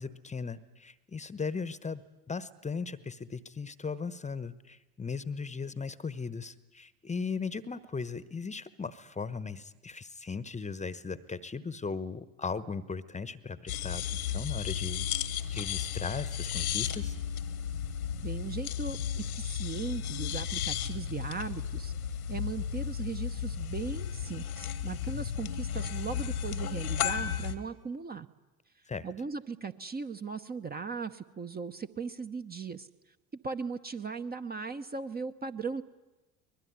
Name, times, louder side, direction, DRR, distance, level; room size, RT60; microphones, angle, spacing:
voice 1, 0.0-2.0 2.3-15.2 15.5-17.1 28.9-29.1, left 5 dB, 15° left, 16 dB, 1.0 m, -37 dB
sound 1, 13.7-27.6, left 9 dB, 80° left, 1.6 m, -34 dB
voice 2, 18.2-21.9 22.3-28.3 29.0-32.9 33.4-35.8, right 5 dB, 20° right, 8 dB, 0.9 m, -38 dB
23.5 x 20.0 x 9.5 m, 1.1 s
hypercardioid pair, 70°, 43 cm